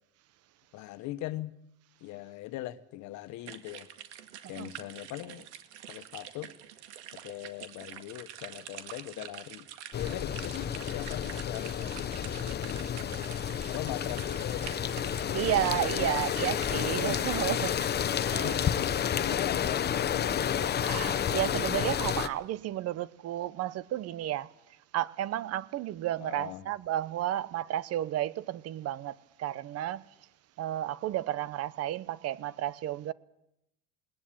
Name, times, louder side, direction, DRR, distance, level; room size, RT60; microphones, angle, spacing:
voice 1, 0.7-1.5 2.0-3.9 4.5-5.5 5.9-6.5 7.1-9.7 9.9-13.3 13.7-14.7 15.4-16.4 16.8-17.2 18.4-20.4 26.2-26.6, left 15 dB, 60° left, 1.4 m, -40 dB
sound 1, 3.4-18.3, right 11 dB, 90° right, 1.9 m, -47 dB
sound 2, 9.9-22.3, left 9 dB, 30° left, 1.0 m, -30 dB
voice 2, 15.3-17.8 18.2-18.7 20.8-24.5 24.9-30.0 30.6-33.1, right 13 dB, 45° right, 1.0 m, -32 dB
20.5 x 20.0 x 8.8 m
supercardioid pair, 105°, 34 cm